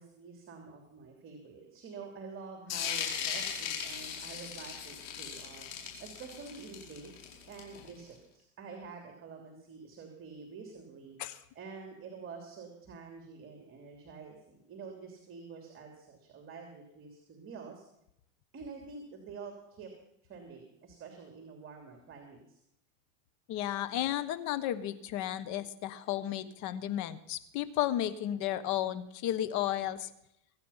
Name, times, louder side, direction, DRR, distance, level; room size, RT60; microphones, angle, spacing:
voice 1, 0.0-5.7 6.0-11.1 11.5-17.8 18.5-19.9 20.3-22.6, right 5 dB, 30° right, 2 dB, 3.0 m, -48 dB
sound 1, 2.7-8.0, left 7 dB, 75° left, 5.4 m, -38 dB
voice 2, 23.5-30.1, left 12 dB, 45° left, 13 dB, 1.3 m, -33 dB
23.0 x 9.7 x 5.8 m, 0.79 s
supercardioid pair, 125°, 40 cm